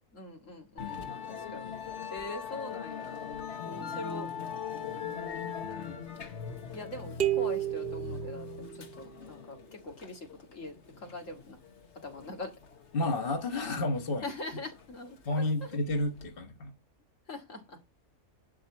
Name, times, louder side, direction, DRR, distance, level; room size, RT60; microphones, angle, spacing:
voice 1, 0.1-1.0 1.2-1.8 2.1-3.2 3.6-4.3 6.7-11.6 12.0-12.5 14.2-15.8 17.3-17.8, left 2 dB, 85° left, 2.4 m, -42 dB
Musical instrument, 0.8-16.3, left 7 dB, 65° left, 1.4 m, -41 dB
voice 2, 0.8-1.1 5.6-6.1 12.9-14.3 15.3-16.7, left 2 dB, 50° left, 1.6 m, -31 dB
sound 1, 7.2-9.1, right 13 dB, 50° right, 1.3 m, -32 dB
11.0 x 4.3 x 7.2 m
omnidirectional pair, 1.3 m